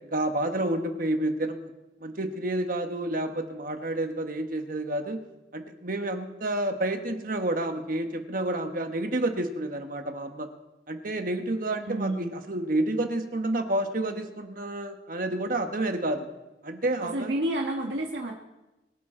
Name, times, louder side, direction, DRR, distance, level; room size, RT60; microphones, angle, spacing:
voice 1, 0.1-1.6 2.0-5.2 5.5-10.5 10.9-16.3 16.6-17.3, right 1 dB, 50° right, 6 dB, 1.4 m, -29 dB
voice 2, 11.9-12.3 17.0-18.3, right 1 dB, 85° right, 0 dB, 1.5 m, -29 dB
22.5 x 12.0 x 3.9 m, 1.0 s
head